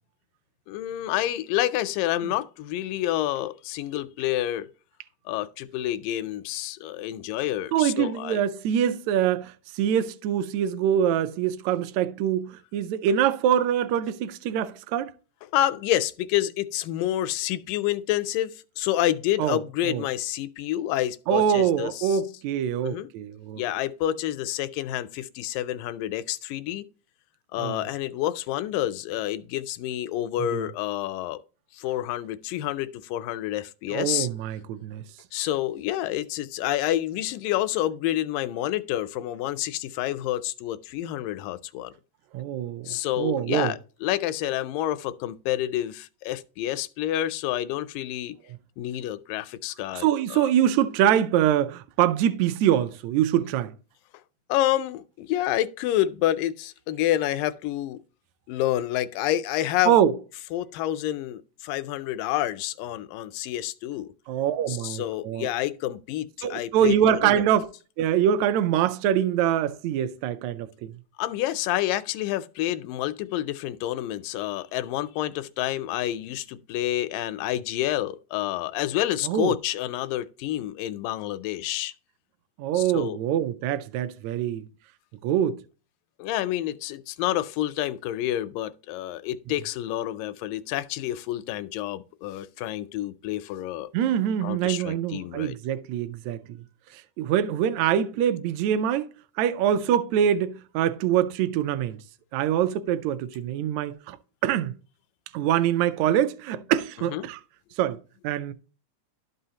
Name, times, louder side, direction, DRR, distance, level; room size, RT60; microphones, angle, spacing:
voice 1, 0.7-4.7 5.3-8.4 15.5-22.2 22.8-23.1 23.6-26.9 27.5-31.4 31.7-34.3 35.3-41.9 42.9-48.4 48.8-50.1 50.3-50.5 54.5-58.0 58.5-59.9 60.5-64.1 64.7-67.4 71.2-81.9 82.7-83.2 86.2-93.9 94.4-95.6 107.1-107.3, left 13 dB, 90° left, 2.2 m, -28 dB
voice 2, 7.7-15.1 19.4-19.6 19.8-20.0 21.3-23.6 27.6-27.9 30.5-30.7 33.9-35.0 42.3-43.7 49.9-53.7 59.8-60.1 64.3-65.5 66.4-67.7 68.0-71.0 79.2-79.5 82.6-84.7 85.2-85.6 93.9-96.6 96.9-102.0 102.3-104.2 104.4-104.8 105.3-107.4 107.8-108.0 108.2-108.5, right 10 dB, 80° right, 1.6 m, -24 dB
12.0 x 5.6 x 2.8 m
omnidirectional pair, 3.8 m